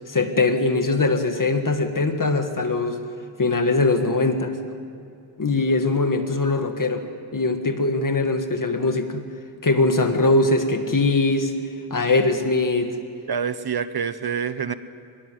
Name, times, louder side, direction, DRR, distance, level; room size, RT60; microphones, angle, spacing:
voice 1, 0.1-3.0 3.4-4.5 5.4-7.0 7.3-9.2 9.6-11.5 11.9-12.9, left 3 dB, 45° left, 6 dB, 2.0 m, -21 dB
voice 2, 13.3-14.7, right 7 dB, 55° right, 12 dB, 1.0 m, -26 dB
24.0 x 21.0 x 7.8 m, 2.4 s
wide cardioid pair, 120°, 46 cm